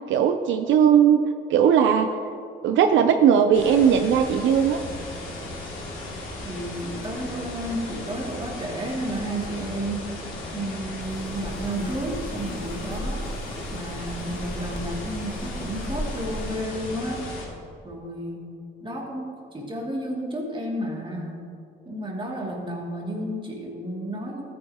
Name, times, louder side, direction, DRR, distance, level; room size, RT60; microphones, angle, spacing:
voice 1, 0.1-1.2 1.5-2.1 2.6-4.8, right 8 dB, 75° right, 7 dB, 0.5 m, -18 dB
sound 1, 3.5-17.4, left 2 dB, 85° left, 2.6 m, -36 dB
voice 2, 6.4-13.3 13.7-17.3 17.8-18.4 18.8-21.4 21.8-24.4, right 1 dB, 25° right, -2 dB, 2.5 m, -32 dB
sound 2, 11.0-16.5, equal, 30° left, 1.3 m, -35 dB
13.5 x 9.4 x 2.9 m, 2.5 s
cardioid pair, 90°, 20 cm